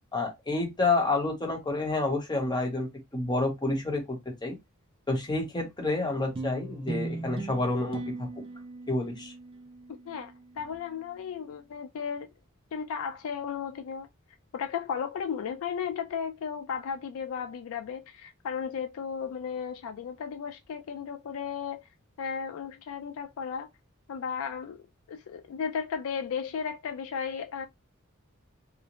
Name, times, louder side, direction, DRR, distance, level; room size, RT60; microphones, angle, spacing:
voice 1, 0.1-4.6 5.1-8.3 8.9-9.3, left 2 dB, 20° left, 0.8 m, -29 dB
sound 1, 6.4-11.0, right 3 dB, 25° right, 0.3 m, -39 dB
voice 2, 10.1-12.3 12.7-14.1 14.5-21.9 22.2-23.7 24.1-27.7, left 6 dB, 70° left, 0.3 m, -35 dB
2.5 x 2.0 x 2.9 m
head